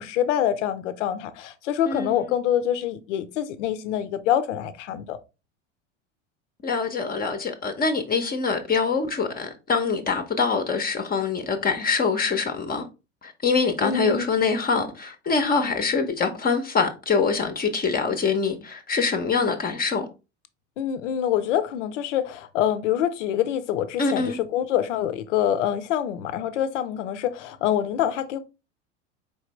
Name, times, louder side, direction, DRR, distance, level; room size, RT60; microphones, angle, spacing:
voice 1, 0.0-5.2 13.8-14.2 20.8-28.4, left 10 dB, 75° left, 0.6 m, -25 dB
voice 2, 1.9-2.3 6.6-12.9 13.2-20.1 24.0-24.4, left 4 dB, 25° left, 0.7 m, -24 dB
4.6 x 3.3 x 3.1 m
hypercardioid pair, 75°, 37 cm